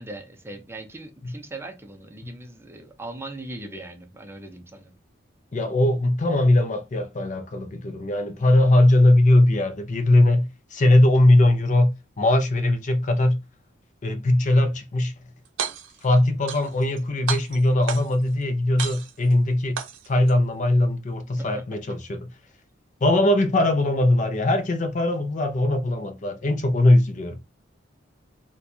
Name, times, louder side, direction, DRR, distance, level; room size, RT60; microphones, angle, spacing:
voice 1, 0.0-4.9 21.4-21.6 21.9-22.0, right 2 dB, 15° right, 0.5 m, -39 dB
voice 2, 5.5-13.4 14.0-15.1 16.0-19.8 20.1-22.3 23.0-27.4, left 1 dB, 40° left, 0.5 m, -20 dB
sound 1, 15.4-16.1 16.5-17.0 17.3-18.3 18.8-19.3 19.8-20.3, right 7 dB, 85° right, 0.6 m, -32 dB
4.3 x 2.2 x 2.6 m
head